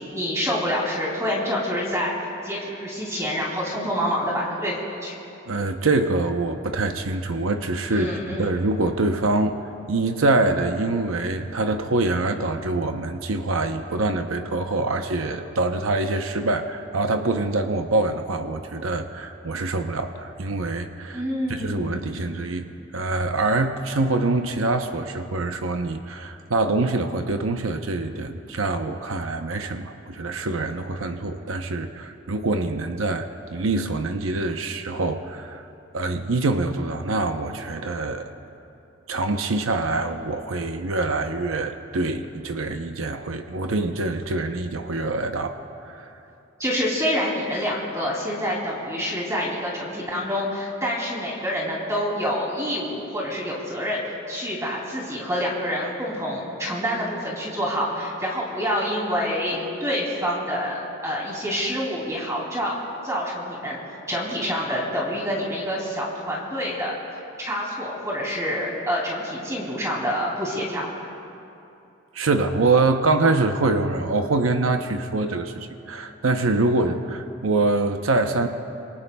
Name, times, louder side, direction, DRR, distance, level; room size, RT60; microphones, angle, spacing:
voice 1, 0.0-4.7 5.0-5.1 7.9-8.5 21.1-21.9 46.6-62.7 63.0-66.9 67.4-70.9, equal, 15° right, -4 dB, 2.7 m, -27 dB
voice 2, 5.5-8.1 8.4-9.6 9.9-21.2 21.5-35.7 35.9-38.3 39.1-46.1 72.1-78.5, right 2 dB, 90° right, 6 dB, 0.8 m, -25 dB
27.5 x 23.0 x 2.3 m, 2.7 s
head